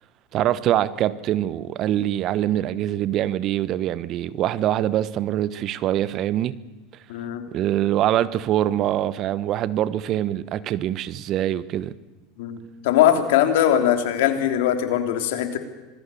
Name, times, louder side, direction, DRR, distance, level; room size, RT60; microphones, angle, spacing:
voice 1, 0.3-6.6 7.5-11.9, right 12 dB, 50° right, 16 dB, 1.1 m, -24 dB
voice 2, 7.1-7.4 12.4-15.6, left 10 dB, 70° left, 6 dB, 3.1 m, -21 dB
26.5 x 21.0 x 7.0 m, 1.1 s
hypercardioid pair, 85°, 0 cm